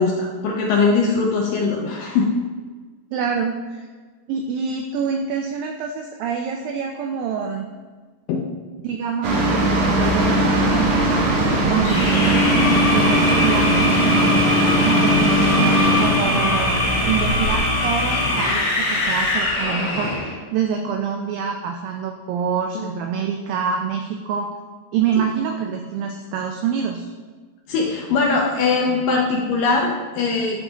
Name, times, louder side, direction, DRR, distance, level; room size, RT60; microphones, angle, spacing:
voice 1, 0.0-2.3 8.3-8.4 22.8-22.9 25.2-25.3 27.7-30.6, left 4 dB, 75° left, -1 dB, 2.1 m, -21 dB
voice 2, 3.1-3.9 4.3-7.7 8.8-9.4 9.7-13.7 14.8-24.5 24.9-27.1, right 7 dB, 85° right, 3 dB, 2.0 m, -26 dB
sound 1, 9.2-17.6, right 1 dB, 65° right, 1.9 m, -19 dB
sound 2, 11.8-20.3, left 1 dB, 50° left, 1.9 m, -22 dB
10.5 x 3.7 x 4.0 m, 1.4 s
omnidirectional pair, 4.6 m